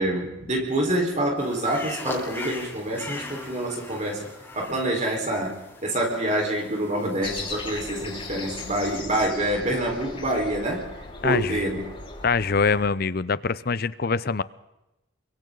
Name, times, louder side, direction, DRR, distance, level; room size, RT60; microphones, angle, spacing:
voice 1, 0.0-4.3 4.5-10.8 11.2-11.8, right 1 dB, 35° right, 0 dB, 4.7 m, -26 dB
sound 1, 1.4-9.0, left 2 dB, 10° left, 4.2 m, -40 dB
sound 2, 7.2-12.8, left 3 dB, 30° left, 5.5 m, -38 dB
voice 2, 11.2-11.6 12.2-14.4, left 4 dB, 50° left, 17 dB, 0.7 m, -24 dB
28.5 x 23.5 x 4.0 m, 0.94 s
head